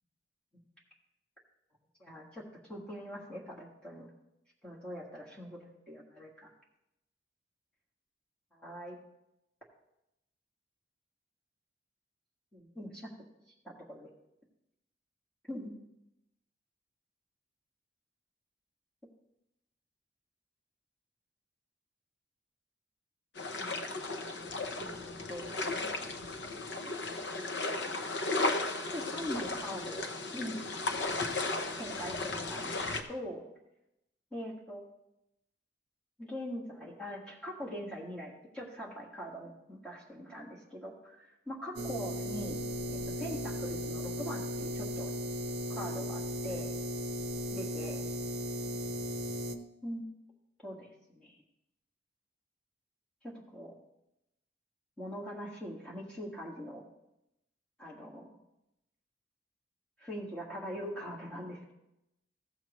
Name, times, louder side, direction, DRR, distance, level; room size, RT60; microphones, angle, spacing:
voice 1, 2.0-2.4 2.7-4.1 4.6-6.5 8.5-9.0 12.5-13.1 13.6-14.1 15.5-15.8 23.6-23.7 24.8-25.9 27.3-27.4 28.9-30.6 31.8-33.4 34.3-34.9 36.2-42.6 42.9-45.1 45.7-46.7 47.5-48.0 49.8-50.1 50.6-51.4 53.2-53.7 55.0-56.8 57.8-58.3 60.0-61.7, equal, 5° left, -5 dB, 1.7 m, -42 dB
sound 1, 23.4-33.0, left 2 dB, 70° left, 0.8 m, -35 dB
sound 2, 41.8-49.6, equal, 60° right, 0.7 m, -36 dB
15.0 x 7.1 x 3.1 m, 0.87 s
head